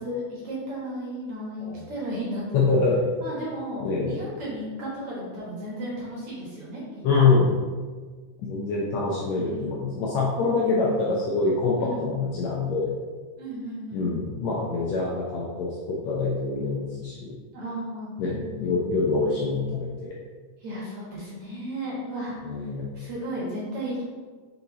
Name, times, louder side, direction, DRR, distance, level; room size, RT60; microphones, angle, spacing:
voice 1, 0.0-2.6 3.2-6.8 7.1-7.3 9.4-9.9 10.5-11.2 11.8-12.1 13.4-14.1 17.5-18.9 20.6-22.4 22.9-24.0, equal, 50° right, -6 dB, 2.1 m, -34 dB
voice 2, 2.5-3.0 3.8-4.2 7.0-7.6 8.4-12.9 13.9-17.3 18.2-20.1 22.4-22.9, left 4 dB, 75° left, -3 dB, 1.7 m, -25 dB
5.9 x 4.1 x 4.0 m, 1.5 s
omnidirectional pair, 3.8 m